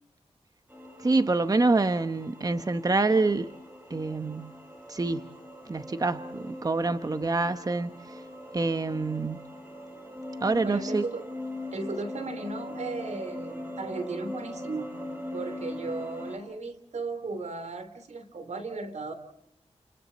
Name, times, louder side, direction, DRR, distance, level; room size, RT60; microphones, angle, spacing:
sound 1, 0.7-16.4, left 1 dB, 15° right, 5.7 m, -41 dB
voice 1, 1.0-3.5 3.9-4.5 4.9-5.2 5.7-8.2 8.5-9.4 10.4-11.0, right 3 dB, 30° right, 1.0 m, -26 dB
voice 2, 10.6-11.3 11.7-15.0 15.3-19.1, right 3 dB, 75° right, 3.3 m, -36 dB
29.5 x 29.0 x 4.1 m
wide cardioid pair, 85°, 12 cm